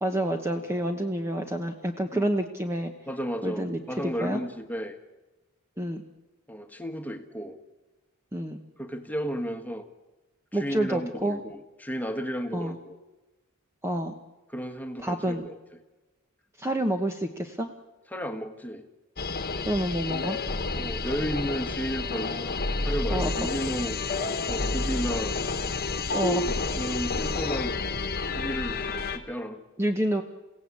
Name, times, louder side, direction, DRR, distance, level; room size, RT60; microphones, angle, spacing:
voice 1, 0.0-2.9 3.4-4.4 5.8-6.0 8.3-8.6 10.5-11.4 12.5-12.8 13.8-14.1 15.0-15.5 16.6-17.7 19.6-20.4 23.1-23.3 26.1-26.4 29.8-30.2, right 1 dB, 10° right, 5 dB, 1.0 m, -28 dB
voice 2, 3.1-5.0 6.5-7.6 8.8-9.8 10.5-13.0 14.5-15.5 18.1-18.9 20.7-24.0 24.5-25.4 26.3-27.8 28.3-29.6, equal, 5° left, 7 dB, 1.5 m, -33 dB
sound 1, 19.2-29.2, left 3 dB, 45° left, 1.4 m, -30 dB
29.0 x 16.5 x 8.5 m, 1.2 s
head